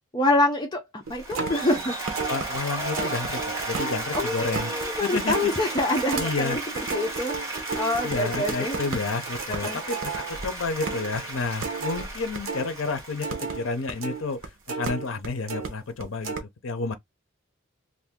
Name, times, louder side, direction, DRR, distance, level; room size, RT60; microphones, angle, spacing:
voice 1, 0.1-2.0 4.1-6.6 6.9-8.8 9.5-9.8, left 2 dB, 20° left, 0.6 m, -26 dB
Applause, 1.1-14.3, right 2 dB, 15° right, 1.1 m, -35 dB
sound 1, 1.1-12.7 13.0-15.7 16.0-16.4, right 4 dB, 85° right, 0.9 m, -33 dB
voice 2, 2.3-4.7 5.0-5.5 6.2-6.6 8.0-17.0, left 4 dB, 70° left, 0.6 m, -31 dB
2.6 x 2.5 x 3.5 m
head